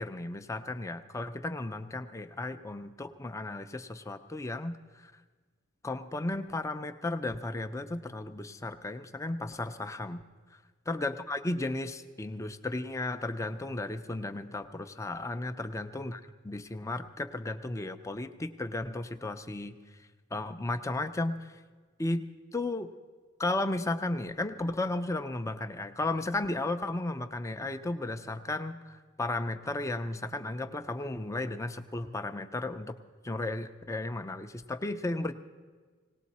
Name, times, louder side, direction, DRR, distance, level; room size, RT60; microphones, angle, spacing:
voice 1, 0.0-5.1 5.8-10.2 10.9-16.2 16.5-19.8 20.3-21.5 22.0-22.9 23.4-33.0 33.2-35.3, left 2 dB, 15° left, 9 dB, 0.5 m, -34 dB
18.5 x 18.5 x 4.2 m, 1.5 s
head